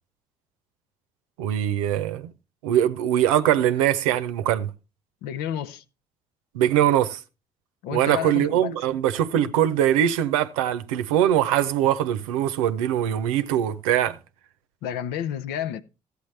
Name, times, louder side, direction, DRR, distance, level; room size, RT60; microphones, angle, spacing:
voice 1, 1.4-2.3 2.6-4.7 6.5-7.2 7.9-14.2, right 11 dB, 85° right, 0.7 m, -22 dB
voice 2, 5.2-5.8 7.8-8.8 9.4-9.5 14.8-15.8, left 10 dB, 75° left, 0.7 m, -31 dB
14.0 x 8.3 x 3.2 m
hypercardioid pair, 50°, 17 cm